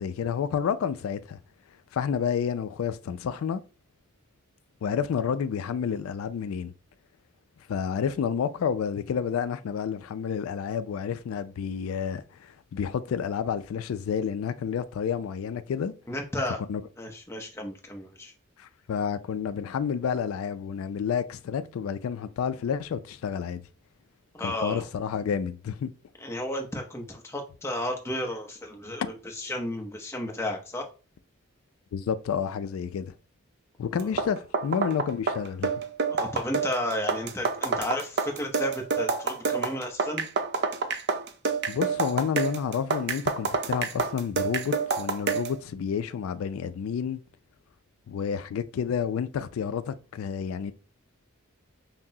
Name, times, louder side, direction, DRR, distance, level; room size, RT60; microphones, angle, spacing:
voice 1, 0.0-1.4 1.9-3.6 4.8-6.7 7.7-15.9 16.7-16.8 18.6-23.6 24.4-25.9 31.9-33.1 33.8-35.7 41.7-47.2 48.1-50.7, left 7 dB, 85° left, 0.3 m, -30 dB
voice 2, 16.1-16.6 17.0-18.3 24.3-24.8 26.2-30.9 36.1-40.2, left 1 dB, 15° left, 0.6 m, -33 dB
sound 1, 34.0-45.6, right 4 dB, 50° right, 0.4 m, -28 dB
5.8 x 2.0 x 2.7 m
head